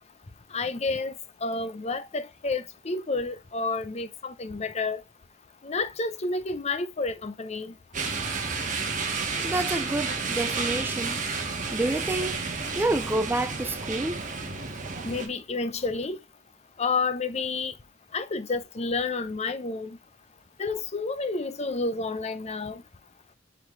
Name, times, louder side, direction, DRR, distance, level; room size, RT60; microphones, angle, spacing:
voice 1, 0.5-5.0 5.6-7.7 15.0-16.2 16.8-17.7 18.1-20.0 20.6-22.8, left 3 dB, 35° left, 0.7 m, -30 dB
sound 1, 7.9-15.3, right 4 dB, 45° right, 1.5 m, -31 dB
voice 2, 9.4-11.2 11.7-12.4 12.7-14.2, right 2 dB, 10° right, 0.4 m, -28 dB
8.0 x 4.0 x 3.1 m
head